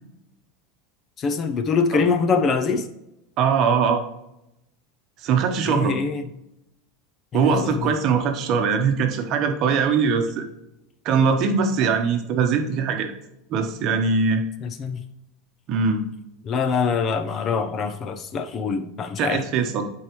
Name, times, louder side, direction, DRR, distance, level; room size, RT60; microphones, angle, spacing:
voice 1, 1.2-2.9 5.7-6.3 7.3-7.9 14.6-15.0 16.5-19.4, left 5 dB, 30° left, 9 dB, 0.5 m, -24 dB
voice 2, 3.4-4.0 5.2-6.0 7.3-10.4 11.0-13.1 13.5-14.4 15.7-16.1 19.2-19.8, right 5 dB, 40° right, 6 dB, 1.0 m, -21 dB
10.0 x 4.7 x 3.1 m, 0.87 s
supercardioid pair, 155°, 0 cm